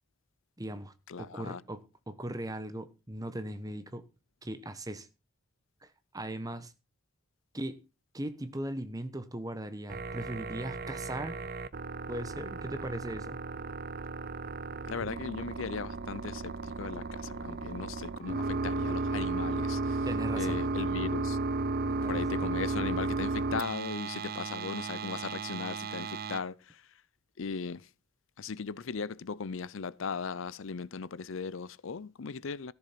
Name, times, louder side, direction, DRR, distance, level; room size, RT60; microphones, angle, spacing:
voice 1, 0.6-4.0 4.4-5.1 5.8-6.7 7.5-7.8 8.1-11.4 12.1-13.4 20.1-20.6 21.9-22.4, right 1 dB, 15° right, 1.0 m, -39 dB
voice 2, 1.1-1.6 14.9-20.1 20.3-21.4 22.1-26.8 27.4-27.9 28.4-32.7, left 5 dB, 65° left, 0.5 m, -38 dB
sound 1, 9.9-26.4, right 3 dB, 45° right, 0.6 m, -34 dB
14.0 x 7.1 x 5.7 m
head